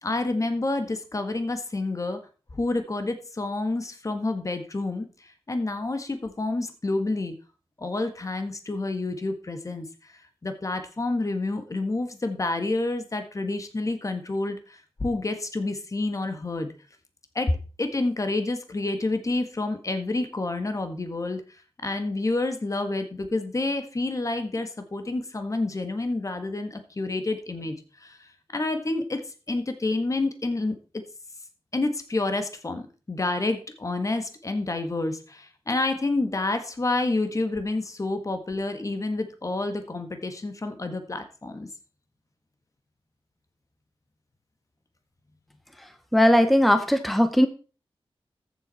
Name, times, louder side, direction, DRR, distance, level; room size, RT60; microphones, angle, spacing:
voice 1, 0.0-2.2 2.5-7.3 7.8-16.7 17.3-21.4 21.8-29.2 29.5-31.0 31.7-41.7, left 2 dB, 35° left, 8 dB, 1.6 m, -29 dB
voice 2, 46.1-47.5, equal, ahead, 9 dB, 0.9 m, -19 dB
14.0 x 7.5 x 4.2 m, 0.35 s
wide cardioid pair, 120°, 10 cm